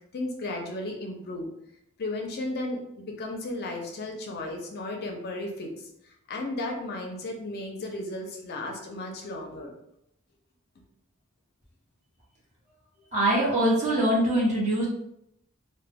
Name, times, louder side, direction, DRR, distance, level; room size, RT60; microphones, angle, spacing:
voice 1, 0.1-1.5 2.0-9.7, left 2 dB, 45° left, 1 dB, 0.4 m, -34 dB
voice 2, 13.1-14.9, right 1 dB, 35° right, -6 dB, 1.0 m, -23 dB
2.2 x 2.1 x 3.3 m, 0.76 s
head